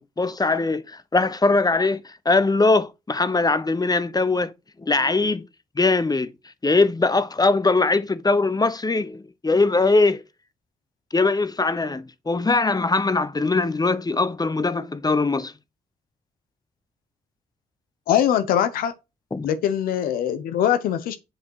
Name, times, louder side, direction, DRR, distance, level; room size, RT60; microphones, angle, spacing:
voice 1, 0.0-4.5 4.8-5.5 5.8-6.3 6.6-10.2 11.1-15.5 19.3-19.5, left 3 dB, 25° left, 0.9 m, -21 dB
voice 2, 18.1-18.9 19.4-21.2, left 10 dB, 85° left, 0.9 m, -22 dB
7.6 x 5.1 x 4.7 m
supercardioid pair, 45°, 15 cm